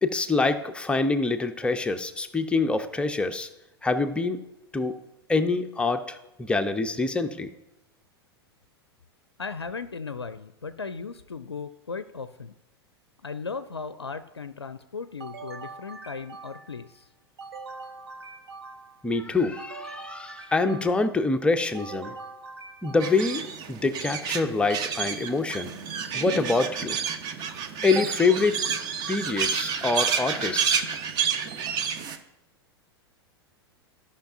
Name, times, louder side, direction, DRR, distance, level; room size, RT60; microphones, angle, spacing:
voice 1, 0.0-3.5 3.8-4.4 4.7-5.0 5.3-7.5 19.0-22.1 22.8-23.4 23.7-25.7 26.1-27.0 27.8-28.6 29.1-31.0, left 3 dB, 10° left, 8 dB, 0.5 m, -25 dB
voice 2, 9.4-12.5 13.2-17.1, left 5 dB, 80° left, 12 dB, 0.4 m, -37 dB
sound 1, 15.2-16.9 17.4-19.1 19.6-21.2 21.7-23.5, right 3 dB, 70° right, 0.8 m, -43 dB
sound 2, 23.0-32.2, right 7 dB, 30° right, 0.8 m, -29 dB
15.0 x 5.6 x 2.6 m, 0.91 s
figure-of-eight pair, 95°, 13 cm